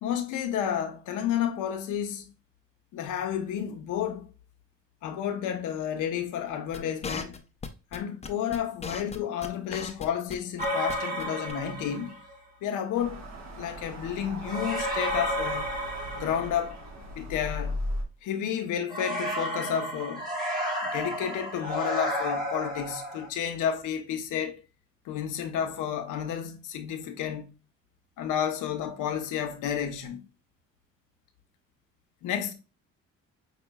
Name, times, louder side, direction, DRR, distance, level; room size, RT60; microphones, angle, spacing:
voice 1, 0.0-2.3 2.9-4.3 5.0-7.4 7.9-12.2 12.6-13.2 13.5-15.8 16.1-16.8 17.2-17.8 18.2-20.3 20.9-24.6 25.0-27.5 28.2-30.2 32.2-32.5, left 9 dB, 85° left, 0.8 m, -31 dB
sound 1, 6.7-10.3 10.6-10.9 11.2-11.3 11.5-11.6, left 4 dB, 20° left, 0.5 m, -37 dB
sound 2, 10.6-12.3 14.4-17.0 18.9-23.3, equal, 30° right, 1.2 m, -32 dB
sound 3, 12.9-18.0, left 1 dB, 65° right, 1.3 m, -37 dB
5.5 x 2.9 x 2.2 m
cardioid pair, 90°, 30 cm